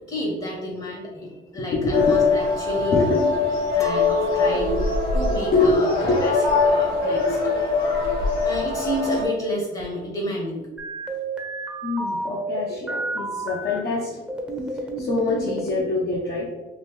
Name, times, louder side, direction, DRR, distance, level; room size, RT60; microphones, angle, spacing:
voice 1, 0.1-3.2 3.7-5.9 6.2-6.3 6.6-7.4 8.4-10.7, equal, 30° left, -2 dB, 1.0 m, -30 dB
voice 2, 1.6-2.4 2.8-3.2 5.5-6.4 11.8-14.1 14.7-16.5, left 3 dB, 55° left, -6 dB, 0.9 m, -24 dB
sound 1, 1.9-9.2, left 4 dB, 75° left, 1.3 m, -22 dB
Chink clink, 3.8-9.3, left 1 dB, 15° left, 0.5 m, -32 dB
sound 2, 10.8-13.8 14.3-15.9, right 2 dB, 5° right, 0.8 m, -31 dB
4.0 x 2.6 x 3.1 m, 1.2 s
cardioid pair, 90°, 20 cm